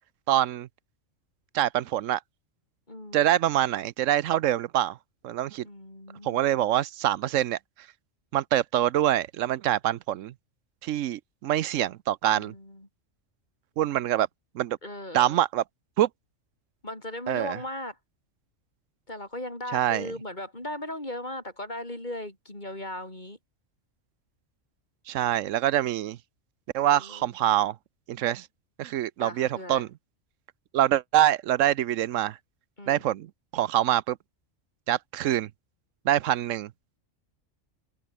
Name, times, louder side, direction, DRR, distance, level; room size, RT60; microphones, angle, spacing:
voice 1, 0.3-0.7 1.5-2.2 3.1-5.0 5.2-5.6 6.2-7.6 8.3-10.3 10.8-12.5 13.8-14.3 14.5-14.8 15.1-15.6 16.0-16.1 17.3-17.6 19.7-20.1 25.1-26.2 26.7-27.8 28.1-28.5 28.8-29.9 30.7-32.4 32.9-34.2 34.9-35.5 36.0-36.7, right 12 dB, 85° right, 1.0 m, -25 dB
voice 2, 2.9-3.4 5.6-6.8 12.3-12.9 14.8-15.4 16.8-18.0 19.1-23.4 26.9-27.3 29.2-29.9 32.8-33.0, left 1 dB, 35° left, 6.1 m, -38 dB
omnidirectional pair, 1.3 m